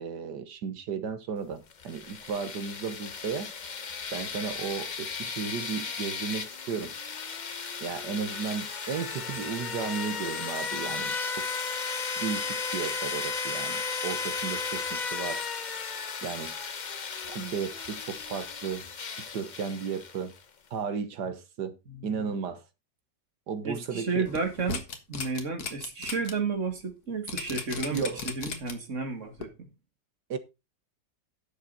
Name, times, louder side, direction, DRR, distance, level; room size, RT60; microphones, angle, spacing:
voice 1, 0.0-3.5 4.1-6.9 7.8-11.5 12.2-15.4 16.2-16.5 17.3-18.9 19.2-20.3 20.7-21.8 22.0-22.6 23.5-24.3 27.9-28.3 30.3-30.4, right 6 dB, 75° right, 1.8 m, -34 dB
sound 1, 1.7-20.4, left 5 dB, 40° left, 0.6 m, -35 dB
voice 2, 23.6-24.8 25.1-29.7, right 4 dB, 45° right, 2.6 m, -32 dB
sound 2, 24.3-26.3 26.7-26.8 27.3-28.9 29.4-29.5, left 5 dB, 60° left, 2.0 m, -36 dB
11.5 x 7.3 x 4.1 m
omnidirectional pair, 1.9 m